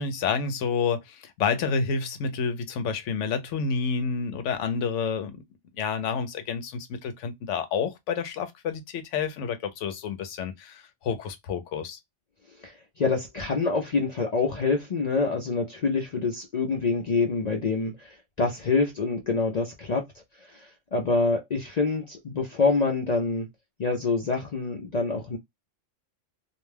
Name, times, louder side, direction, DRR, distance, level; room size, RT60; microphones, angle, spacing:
voice 1, 0.0-5.4 5.8-12.0, left 5 dB, 75° left, 0.9 m, -29 dB
voice 2, 12.6-23.5 23.8-25.4, left 4 dB, 60° left, 0.4 m, -26 dB
2.5 x 2.2 x 3.2 m
omnidirectional pair, 1.3 m